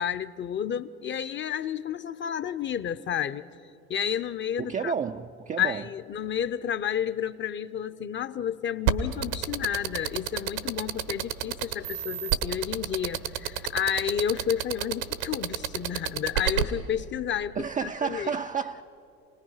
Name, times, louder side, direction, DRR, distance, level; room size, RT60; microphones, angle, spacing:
voice 1, 0.0-3.4 3.9-4.9 5.6-18.3, left 9 dB, 25° left, 0.7 m, -31 dB
voice 2, 4.6-5.8 17.5-18.8, right 6 dB, 20° right, 0.4 m, -31 dB
sound 1, 8.9-16.6, right 11 dB, 75° right, 1.3 m, -28 dB
29.0 x 19.5 x 5.6 m
hypercardioid pair, 80°, 43 cm